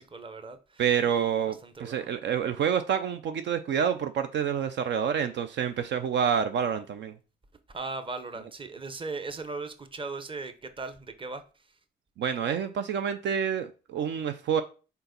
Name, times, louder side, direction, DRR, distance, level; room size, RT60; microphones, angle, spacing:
voice 1, 0.0-2.1 7.7-11.4, right 3 dB, 25° right, 0.9 m, -38 dB
voice 2, 0.8-7.1 12.2-14.6, right 8 dB, 65° right, 0.6 m, -28 dB
4.5 x 4.0 x 5.2 m
cardioid pair, 90°, 20 cm